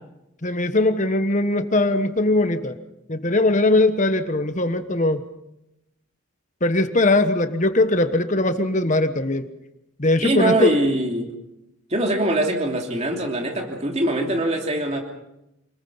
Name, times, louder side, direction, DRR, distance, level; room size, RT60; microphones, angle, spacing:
voice 1, 0.4-2.8 3.1-5.2 6.6-9.5 10.0-10.7, left 2 dB, 35° left, 9 dB, 1.2 m, -20 dB
voice 2, 10.2-11.3 11.9-15.0, right 1 dB, 30° right, 2 dB, 2.9 m, -22 dB
27.5 x 20.5 x 5.7 m, 0.87 s
head